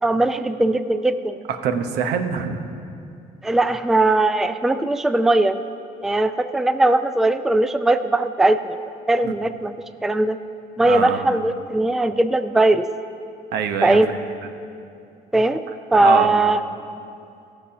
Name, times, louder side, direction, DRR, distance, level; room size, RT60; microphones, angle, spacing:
voice 1, 0.0-1.4 3.4-5.6 6.0-8.8 9.1-9.7 10.0-10.4 10.8-12.9 13.8-14.2 15.3-15.6 15.9-16.6, right 2 dB, ahead, 11 dB, 0.3 m, -19 dB
voice 2, 1.6-2.6 9.2-9.3 10.8-11.4 13.5-14.0 16.0-16.3, right 7 dB, 80° right, 7 dB, 0.9 m, -24 dB
15.0 x 6.9 x 5.7 m, 2.5 s
cardioid pair, 110°, 17 cm